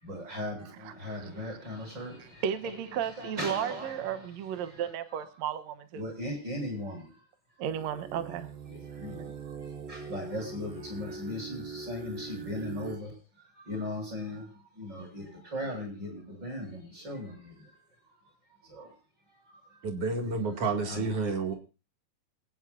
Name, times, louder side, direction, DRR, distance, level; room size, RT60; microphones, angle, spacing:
voice 1, 0.0-4.2 4.6-4.8 5.9-7.2 8.7-13.1 13.5-17.7 18.5-19.0 19.4-19.8 20.3-20.5 20.8-21.1, left 1 dB, 30° right, 7.3 m, -39 dB
voice 2, 0.8-1.3 2.2-6.0 7.6-8.5 9.2-9.3, right 9 dB, 65° right, 1.9 m, -34 dB
sound 1, 7.6-13.0, right 5 dB, 85° right, 3.3 m, -42 dB
voice 3, 19.8-21.5, right 3 dB, 45° right, 2.7 m, -30 dB
27.0 x 9.3 x 2.4 m
omnidirectional pair, 4.0 m